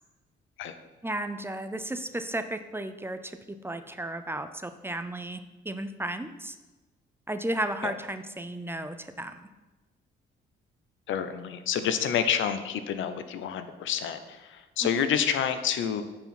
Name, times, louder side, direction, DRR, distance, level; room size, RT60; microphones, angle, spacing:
voice 1, 1.0-6.6 7.3-9.5 15.0-15.1, right 1 dB, 10° right, 10 dB, 0.5 m, -34 dB
voice 2, 11.1-16.0, left 8 dB, 75° left, 10 dB, 0.7 m, -28 dB
8.6 x 4.9 x 5.8 m, 1.2 s
cardioid pair, 90°, 20 cm